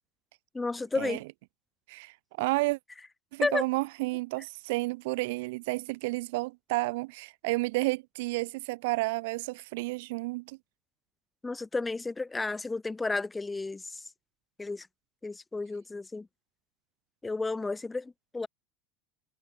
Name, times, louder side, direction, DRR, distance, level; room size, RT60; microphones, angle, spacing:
voice 1, 0.5-1.2 3.4-3.6 11.4-14.0 14.6-14.9 15.2-16.3 17.2-18.5, left 3 dB, 15° left, 3.3 m, -32 dB
voice 2, 1.9-2.8 3.3-10.6, right 23 dB, 75° right, 0.9 m, -31 dB
hypercardioid pair, 80°, 0 cm